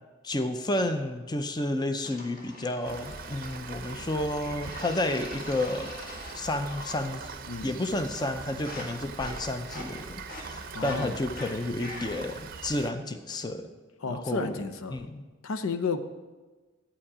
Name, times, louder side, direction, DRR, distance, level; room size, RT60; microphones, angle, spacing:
voice 1, 0.2-5.9 6.3-7.3 7.6-13.7 14.1-14.5 14.9-15.2, left 1 dB, 20° left, 8 dB, 0.5 m, -31 dB
sound 1, 2.0-4.1 4.6-7.1 7.3-7.8 8.1-12.4, left 1 dB, 45° left, 1.7 m, -44 dB
Rain, 2.9-12.9, right 4 dB, 45° right, 0.6 m, -42 dB
voice 2, 7.5-7.8 10.7-11.2 14.0-15.1 15.4-16.0, left 4 dB, 90° left, 10 dB, 0.7 m, -32 dB
11.5 x 8.6 x 4.9 m, 1.3 s
head